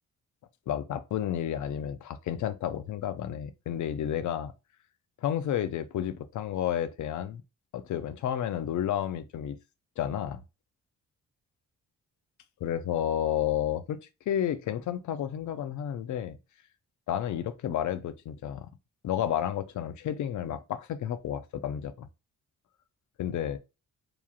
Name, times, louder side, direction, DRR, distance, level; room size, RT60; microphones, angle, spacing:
voice 1, 0.7-4.5 5.2-7.4 7.7-9.6 10.0-10.4 12.6-14.0 14.3-16.4 17.1-18.7 19.0-22.1 23.2-23.6, left 10 dB, 65° left, 0.4 m, -31 dB
2.9 x 2.3 x 2.3 m
cardioid pair, 95°, 32 cm